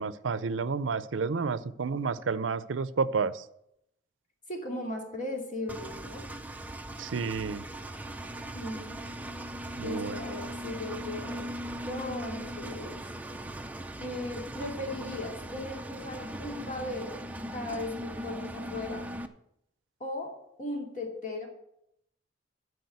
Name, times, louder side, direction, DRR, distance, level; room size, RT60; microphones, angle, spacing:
voice 1, 0.0-3.4 7.0-7.6 9.8-10.2, right 5 dB, 85° right, 15 dB, 0.5 m, -30 dB
voice 2, 4.5-6.2 8.5-8.9 9.8-11.5 11.9-12.9 14.0-19.0 20.0-20.3 20.6-21.5, left 1 dB, 45° left, 0 dB, 2.5 m, -37 dB
Engine, 5.7-19.3, right 1 dB, 10° right, 0.5 m, -39 dB
12.0 x 4.9 x 8.0 m, 0.79 s
head